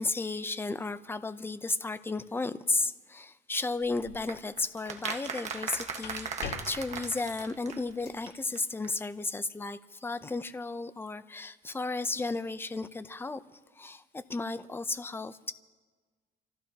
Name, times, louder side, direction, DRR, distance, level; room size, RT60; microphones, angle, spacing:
voice 1, 0.0-13.4 13.8-15.5, left 3 dB, 15° left, 12 dB, 0.7 m, -34 dB
sound 1, 3.8-4.4 5.7-8.3, left 6 dB, 75° left, 2.1 m, -44 dB
sound 2, 4.3-8.0 8.3-8.4 8.5-8.6 8.8-8.9, right 5 dB, 40° right, 1.5 m, -38 dB
28.0 x 15.0 x 2.9 m, 1.4 s
cardioid pair, 110°, 17 cm